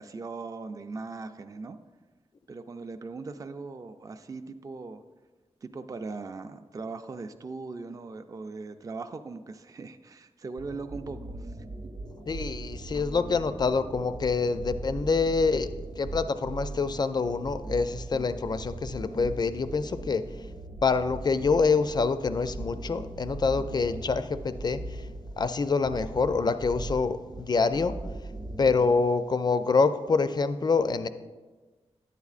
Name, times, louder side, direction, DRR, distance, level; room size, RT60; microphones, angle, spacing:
voice 1, 0.0-1.8 2.5-5.0 5.6-11.6, right 3 dB, 30° right, 7 dB, 0.3 m, -39 dB
sound 1, 10.6-29.0, right 2 dB, 75° right, 0.7 m, -39 dB
voice 2, 12.3-15.7 16.0-20.2 20.8-24.8 25.4-28.0 28.6-31.1, left 4 dB, 40° left, 11 dB, 0.4 m, -26 dB
10.5 x 8.2 x 2.4 m, 1.3 s
wide cardioid pair, 105°, 11 cm